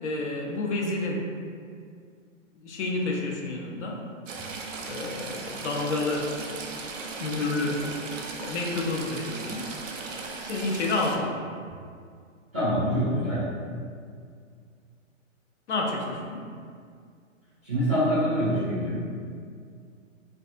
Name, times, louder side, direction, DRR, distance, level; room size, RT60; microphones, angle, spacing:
voice 1, 0.0-1.3 2.6-4.0 4.9-6.3 7.2-7.9 8.4-9.7 10.5-11.4 15.7-16.4, left 2 dB, 60° left, 0 dB, 0.5 m, -29 dB
Stream / Trickle dribble, 4.3-11.2, right 4 dB, 75° right, 0.5 m, -37 dB
voice 2, 12.5-13.5 17.6-19.0, equal, 10° right, -19 dB, 0.4 m, -25 dB
2.3 x 2.3 x 2.4 m, 2.2 s
hypercardioid pair, 150°, 39 cm